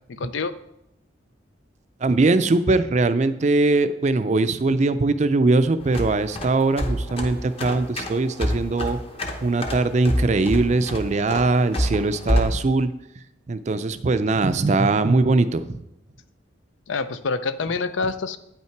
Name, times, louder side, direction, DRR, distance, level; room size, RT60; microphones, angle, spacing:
voice 1, 0.2-0.5 16.9-18.4, left 4 dB, 80° left, 13 dB, 0.5 m, -26 dB
voice 2, 2.0-9.0 9.4-12.9 13.5-15.8, right 3 dB, 35° right, 12 dB, 0.4 m, -21 dB
sound 1, 5.8-12.6, equal, 30° left, 0.8 m, -27 dB
8.8 x 5.6 x 4.5 m, 0.82 s
head